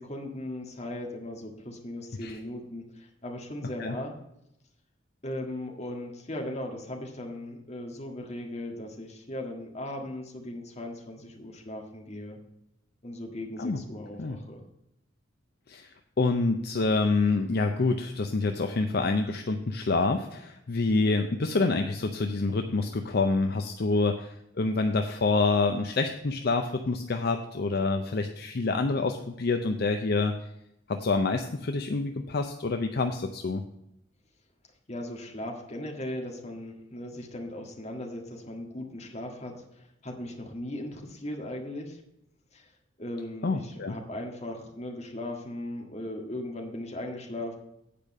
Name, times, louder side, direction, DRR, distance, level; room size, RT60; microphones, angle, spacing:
voice 1, 0.0-4.1 5.2-12.4 13.0-14.6 34.9-42.0 42.5-42.7 43.0-47.5, left 1 dB, 35° left, 1 dB, 1.7 m, -38 dB
voice 2, 16.2-30.4 30.9-33.6 43.4-44.0, left 3 dB, 55° left, 6 dB, 0.6 m, -27 dB
8.6 x 5.1 x 7.3 m, 0.82 s
head